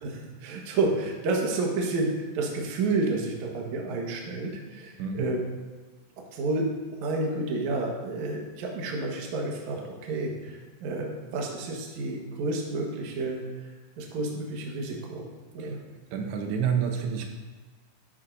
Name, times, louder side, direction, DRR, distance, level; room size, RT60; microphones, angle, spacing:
voice 1, 0.0-5.4 6.3-13.7 14.0-15.3 15.5-15.8, right 2 dB, 60° right, -1 dB, 2.2 m, -30 dB
voice 2, 5.0-5.3 15.6-15.8 16.1-17.3, right 7 dB, 85° right, 3 dB, 3.1 m, -29 dB
12.5 x 9.6 x 2.7 m, 1.4 s
omnidirectional pair, 4.8 m